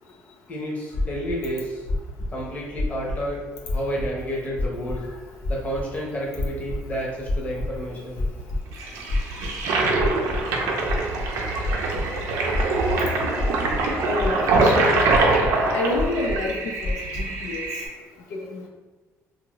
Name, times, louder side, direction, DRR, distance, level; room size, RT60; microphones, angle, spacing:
voice 1, 0.5-1.9 2.3-5.1 5.5-8.2 10.5-10.8, equal, 30° left, -3 dB, 0.8 m, -30 dB
sound 1, 0.9-1.4 1.8-2.3 2.7-3.3 3.7-4.1 4.6-5.0 5.4-5.8 6.3-6.8 7.2-7.8 8.1-8.6 9.1-9.6 10.0-10.4 10.8-12.0 12.5-12.9 13.4-13.9 14.2-14.6 15.1-15.5 15.9-16.5 16.8-17.2, left 2 dB, 50° left, 1.0 m, -27 dB
Toilet flush, 8.7-17.9, right 3 dB, 85° right, 0.5 m, -24 dB
voice 2, 14.0-15.1 15.7-17.7 18.3-18.7, left 2 dB, 80° left, -1 dB, 0.4 m, -28 dB
2.6 x 2.6 x 3.0 m, 1.2 s
cardioid pair, 135°, 5 cm